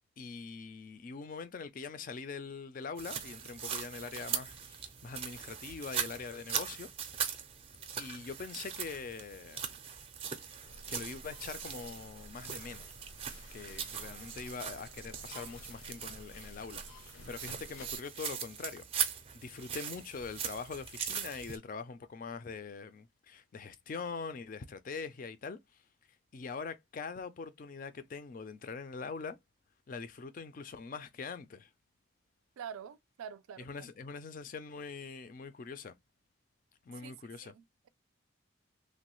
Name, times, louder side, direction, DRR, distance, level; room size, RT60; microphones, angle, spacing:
voice 1, 0.2-6.9 8.0-9.6 10.9-13.0 13.5-25.6 26.3-29.4 29.9-31.7 33.6-35.9 36.8-37.5, left 5 dB, 40° left, 0.3 m, -43 dB
sound 1, 3.0-21.6, right 8 dB, 30° right, 0.4 m, -40 dB
sound 2, 10.6-18.0, left 2 dB, 75° left, 0.7 m, -53 dB
voice 2, 32.6-33.9 36.9-37.1 37.4-37.9, right 8 dB, 90° right, 0.4 m, -46 dB
3.0 x 2.2 x 3.0 m
head